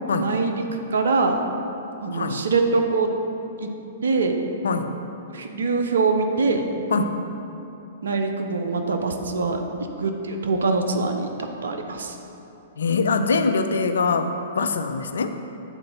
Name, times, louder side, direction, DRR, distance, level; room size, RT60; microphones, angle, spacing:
voice 1, 0.2-0.7 0.9-1.4 2.0-3.1 3.6-3.7 4.0-4.4 5.3-6.8 8.0-9.6 10.0-11.3 11.6-12.2, right 3 dB, 75° right, 5 dB, 0.7 m, -23 dB
voice 2, 2.1-2.4 4.6-4.9 6.9-7.2 12.8-15.3, left 4 dB, 75° left, 8 dB, 0.4 m, -23 dB
8.3 x 3.9 x 5.4 m, 2.9 s
figure-of-eight pair, 115°, 0 cm